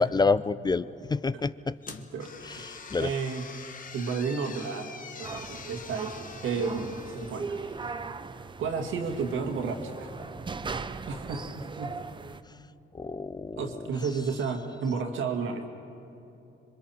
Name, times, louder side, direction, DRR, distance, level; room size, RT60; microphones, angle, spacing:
voice 1, 0.0-1.8 2.4-3.1 12.5-12.6 12.9-13.9, left 4 dB, 20° left, 16 dB, 0.4 m, -28 dB
sound 1, 1.8-8.0, left 5 dB, 45° left, 1.2 m, -45 dB
voice 2, 1.9-2.7 3.0-3.4 3.9-7.6 8.6-10.1 11.1-11.5 11.8-12.0 13.6-15.6, right 5 dB, 80° right, 3 dB, 2.0 m, -32 dB
sound 2, 5.2-12.4, right 4 dB, 25° right, 0.7 m, -39 dB
26.5 x 23.0 x 4.4 m, 2.8 s
cardioid pair, 90°, 20 cm